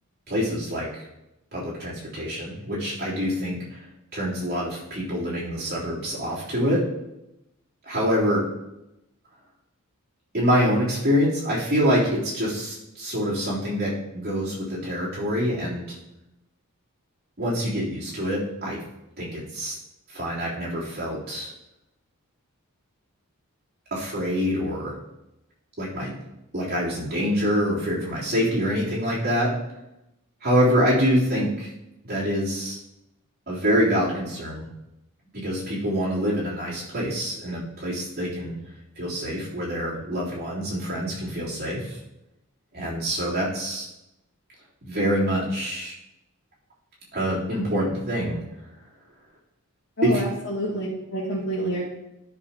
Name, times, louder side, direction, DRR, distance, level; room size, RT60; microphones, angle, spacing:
voice 1, 0.3-1.0 1.5-3.8 4.1-6.8 7.8-8.4 10.3-16.0 17.4-18.8 19.2-19.7 20.1-21.5 23.9-24.9 25.8-26.1 26.5-29.5 30.4-31.7 32.0-32.8 33.5-34.6 35.3-38.5 38.9-42.0 42.7-43.9 44.8-45.9 47.1-48.4 50.0-50.2, equal, 45° right, -8 dB, 3.5 m, -25 dB
voice 2, 50.0-51.9, equal, 85° left, -8 dB, 2.0 m, -28 dB
13.0 x 6.5 x 2.9 m, 0.92 s
head